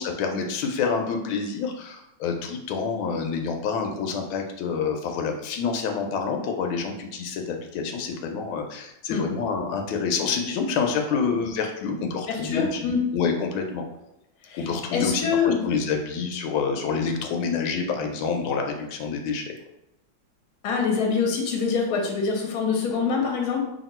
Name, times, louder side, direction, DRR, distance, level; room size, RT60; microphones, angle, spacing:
voice 1, 0.0-13.8 14.5-19.4, left 5 dB, 85° left, 3 dB, 1.4 m, -27 dB
voice 2, 12.3-13.0 14.5-15.6 20.6-23.6, left 5 dB, 60° left, 0 dB, 1.1 m, -25 dB
3.0 x 2.8 x 4.2 m, 0.84 s
omnidirectional pair, 2.2 m